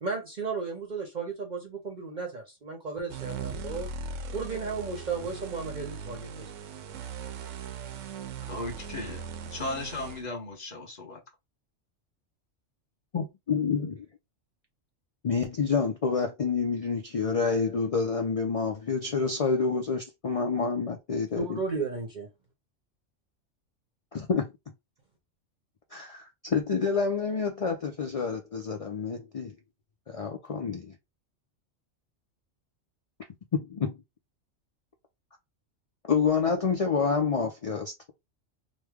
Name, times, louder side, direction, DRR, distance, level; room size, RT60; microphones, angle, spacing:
voice 1, 0.0-3.9 4.3-6.5 21.3-22.3, right 4 dB, 45° right, 0.7 m, -34 dB
sound 1, 3.1-10.3, right 5 dB, 80° right, 0.9 m, -39 dB
voice 2, 8.4-11.2, left 2 dB, 35° left, 1.1 m, -36 dB
voice 3, 13.1-14.1 15.2-21.6 24.1-24.5 25.9-29.6 30.1-30.9 33.5-34.0 36.1-38.1, left 5 dB, 65° left, 0.3 m, -28 dB
3.1 x 2.1 x 3.5 m
omnidirectional pair, 1.3 m